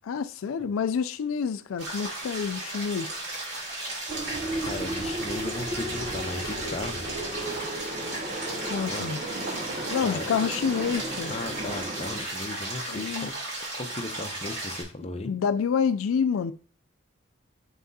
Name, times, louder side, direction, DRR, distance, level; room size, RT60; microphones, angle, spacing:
voice 1, 0.1-3.1 8.7-9.2 9.9-11.3 12.9-13.3 15.2-16.5, left 6 dB, 85° left, 0.4 m, -28 dB
sound 1, 1.8-14.8, right 2 dB, 55° right, 3.2 m, -35 dB
sound 2, 4.1-12.3, right 1 dB, 35° right, 0.8 m, -34 dB
voice 2, 4.5-7.0 8.9-9.1 10.0-10.3 11.3-13.3 13.7-15.3, left 2 dB, 30° left, 0.7 m, -36 dB
6.2 x 5.7 x 2.7 m
head